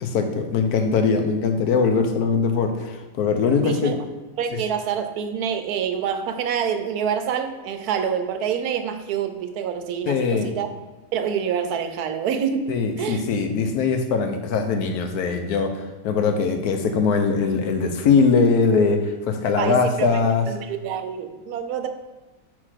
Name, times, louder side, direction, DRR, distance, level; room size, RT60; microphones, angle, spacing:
voice 1, 0.0-3.9 10.1-10.5 12.7-20.5, left 5 dB, 85° left, 6 dB, 1.3 m, -21 dB
voice 2, 3.6-4.0 4.4-10.7 11.1-13.2 19.6-21.9, right 7 dB, 85° right, 8 dB, 1.2 m, -27 dB
4.6 x 4.4 x 5.7 m, 1.2 s
omnidirectional pair, 1.6 m